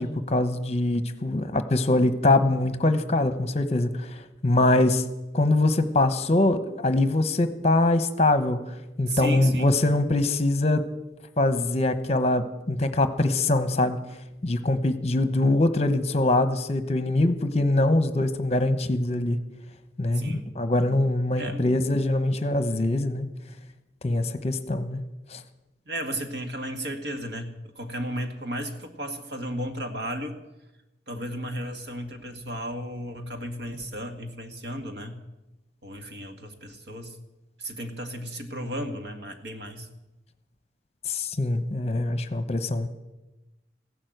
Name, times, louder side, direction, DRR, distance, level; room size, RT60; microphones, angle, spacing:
voice 1, 0.0-5.0 5.3-8.6 9.0-10.9 11.4-14.0 14.4-19.4 20.0-23.3 24.0-25.0 25.3-25.4 41.1-42.9, left 2 dB, 35° left, 10 dB, 1.0 m, -23 dB
voice 2, 9.1-10.0 20.1-20.5 21.4-21.7 25.9-30.4 31.1-35.2 35.8-37.2 37.6-39.9, equal, 80° right, 6 dB, 1.9 m, -34 dB
15.5 x 11.5 x 7.9 m, 1.0 s
head